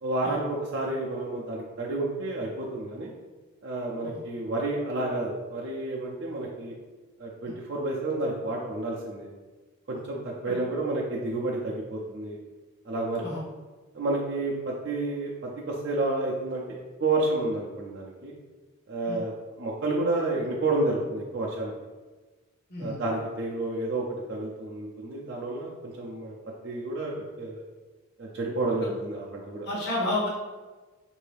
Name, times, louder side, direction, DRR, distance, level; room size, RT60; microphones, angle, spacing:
voice 1, 0.0-3.1 3.6-6.7 7.2-9.3 9.9-12.4 12.9-13.2 13.9-15.3 15.7-18.3 18.9-19.3 19.6-21.7 22.8-26.4 26.6-27.6 28.2-29.7, right 2 dB, 55° right, -3 dB, 0.5 m, -30 dB
voice 2, 29.7-30.3, left 1 dB, 50° left, -4 dB, 0.8 m, -30 dB
4.4 x 2.6 x 3.3 m, 1.3 s
head